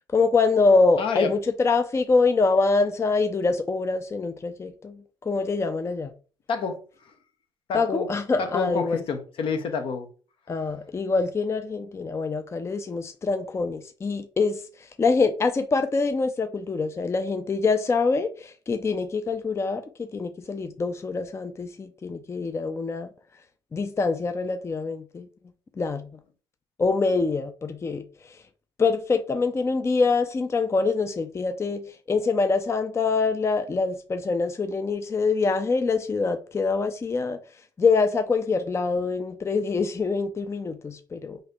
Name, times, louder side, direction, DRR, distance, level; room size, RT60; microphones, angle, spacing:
voice 1, 0.1-6.1 7.7-9.0 10.5-23.1 23.7-25.3 25.8-26.2 26.8-28.4 28.8-37.4 37.8-41.4, left 4 dB, 25° left, 0.5 m, -25 dB
voice 2, 1.0-1.3 6.5-7.1 7.7-8.1 8.4-10.1, left 5 dB, 60° left, 0.8 m, -29 dB
3.1 x 2.6 x 4.2 m
supercardioid pair, 60°, 10 cm